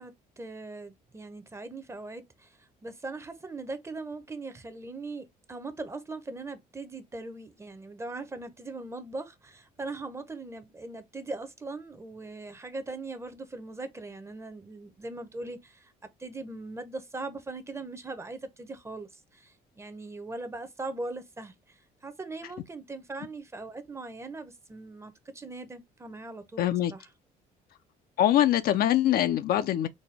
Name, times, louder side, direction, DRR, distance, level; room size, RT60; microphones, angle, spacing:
voice 1, 0.0-15.9 16.2-27.1, right 3 dB, 15° right, 0.7 m, -40 dB
voice 2, 26.6-26.9 28.2-29.9, left 12 dB, 65° left, 0.4 m, -23 dB
4.1 x 2.2 x 3.2 m
cardioid pair, 110°, 17 cm